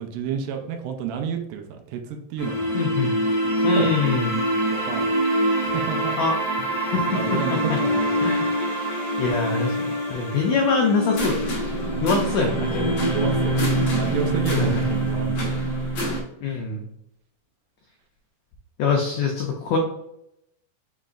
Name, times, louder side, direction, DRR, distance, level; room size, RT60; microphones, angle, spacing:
voice 1, 0.0-2.7 3.7-3.9 4.7-5.1 5.6-6.2 7.1-8.3 12.8-13.6 13.9-15.5, right 7 dB, 80° right, 5 dB, 2.1 m, -30 dB
sound 1, 2.4-16.2, right 1 dB, 55° left, 1.4 m, -24 dB
voice 2, 2.7-3.1 3.6-4.3 6.2-6.4 6.9-7.8 8.2-8.5 9.2-9.7 10.1-11.6 12.0-13.0 14.5-14.8 16.4-16.8 18.8-19.8, left 4 dB, 90° left, 1 dB, 1.5 m, -24 dB
5.3 x 4.0 x 2.4 m, 0.79 s
omnidirectional pair, 3.9 m